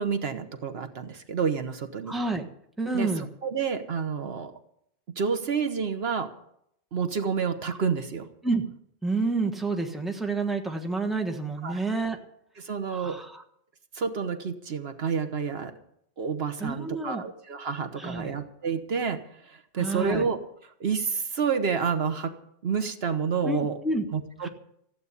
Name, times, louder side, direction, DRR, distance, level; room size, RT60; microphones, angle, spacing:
voice 1, 0.0-2.1 2.9-3.1 3.4-4.6 5.2-6.3 6.9-8.3 11.6-11.8 12.6-13.2 13.9-15.7 16.2-20.4 20.8-22.3 22.6-23.8 24.1-24.5, right 6 dB, 70° right, 8 dB, 1.3 m, -29 dB
voice 2, 2.1-2.4 2.8-3.3 8.4-8.6 9.0-12.2 12.9-13.4 16.6-17.2 18.0-18.4 19.8-20.3 23.4-24.0 24.4-24.5, right 3 dB, ahead, 4 dB, 1.3 m, -29 dB
14.5 x 8.5 x 8.3 m, 0.72 s
omnidirectional pair, 1.1 m